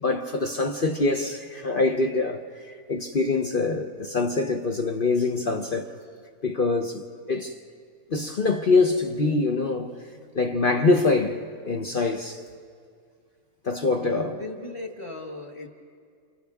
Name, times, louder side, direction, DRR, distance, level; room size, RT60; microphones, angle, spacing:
voice 1, 0.0-5.9 6.4-7.6 8.1-10.0 10.3-12.4 13.6-14.3, left 3 dB, 50° left, 0.6 m, -24 dB
voice 2, 14.0-15.7, left 2 dB, 15° left, 1.5 m, -38 dB
29.5 x 29.0 x 3.6 m
omnidirectional pair, 2.0 m